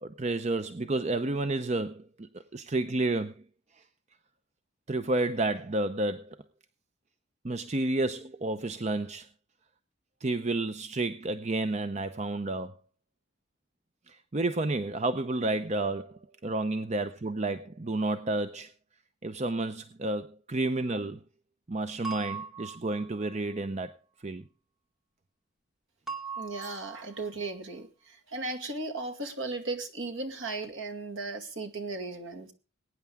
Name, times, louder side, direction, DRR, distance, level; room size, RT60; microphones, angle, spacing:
voice 1, 0.0-3.4 4.9-6.4 7.4-9.3 10.2-12.7 14.1-18.7 19.2-21.2 21.7-23.9 24.2-24.4, right 2 dB, 30° right, 0.6 m, -31 dB
sound 1, 22.0-23.3 26.1-27.3, right 5 dB, ahead, 2.2 m, -40 dB
voice 2, 26.4-32.5, right 3 dB, 60° right, 2.1 m, -36 dB
21.5 x 9.5 x 3.6 m
head